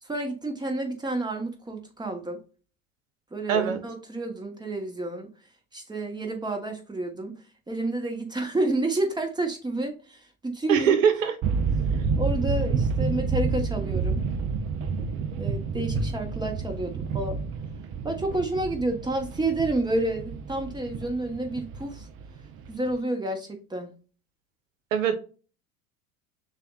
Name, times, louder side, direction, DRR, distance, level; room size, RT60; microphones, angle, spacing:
voice 1, 0.0-2.4 3.3-5.3 5.7-11.0 12.2-14.2 15.4-17.4 18.0-22.1 22.7-23.9, right 2 dB, 10° right, 1.2 m, -30 dB
voice 2, 3.5-3.8 10.7-11.3 24.9-25.1, right 7 dB, 70° right, 0.9 m, -22 dB
sound 1, 11.4-22.9, right 5 dB, 30° right, 0.6 m, -29 dB
6.4 x 2.5 x 2.4 m
figure-of-eight pair, 75°, 41 cm